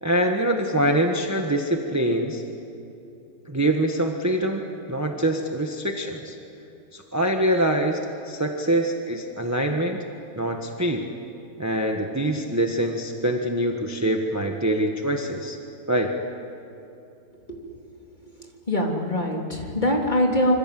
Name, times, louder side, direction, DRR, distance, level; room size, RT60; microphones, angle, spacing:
voice 1, 0.0-2.4 3.5-4.6 4.9-6.4 6.9-10.0 10.4-11.1 11.6-15.6 15.9-16.1, right 1 dB, 10° right, 2 dB, 1.4 m, -24 dB
voice 2, 18.7-20.5, left 1 dB, 30° left, 0 dB, 3.5 m, -22 dB
27.0 x 25.5 x 7.8 m, 2.8 s
omnidirectional pair, 1.6 m